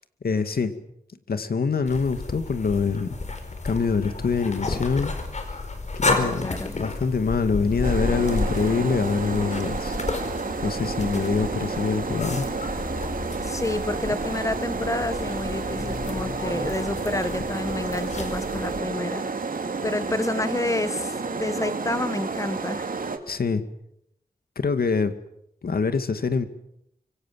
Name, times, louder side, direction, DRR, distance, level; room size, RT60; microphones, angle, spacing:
voice 1, 0.2-0.8 1.3-3.2 3.6-5.1 6.0-10.0 10.6-12.5 23.3-23.6 24.6-25.1 25.6-26.5, left 5 dB, 75° left, 10 dB, 2.2 m, -25 dB
sound 1, 1.9-18.8, left 3 dB, 50° left, 4.7 m, -32 dB
voice 2, 6.0-6.7 13.4-19.3 19.8-22.9, left 2 dB, 20° left, 12 dB, 1.5 m, -29 dB
sound 2, 7.8-23.2, right 4 dB, 65° right, 2.6 m, -31 dB
26.0 x 23.5 x 7.6 m, 0.77 s
wide cardioid pair, 115°, 16 cm